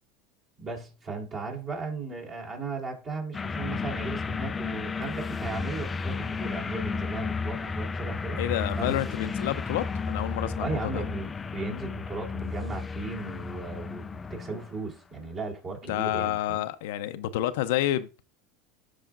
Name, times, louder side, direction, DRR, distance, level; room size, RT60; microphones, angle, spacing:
voice 1, 0.6-8.4 8.8-9.0 10.6-16.7, right 3 dB, 35° right, 3.5 m, -36 dB
sound 1, 3.3-14.8, left 4 dB, 20° left, 0.4 m, -33 dB
voice 2, 8.4-11.0 15.9-18.2, left 13 dB, 75° left, 0.5 m, -29 dB
12.5 x 4.9 x 2.5 m
supercardioid pair, 115°, 0 cm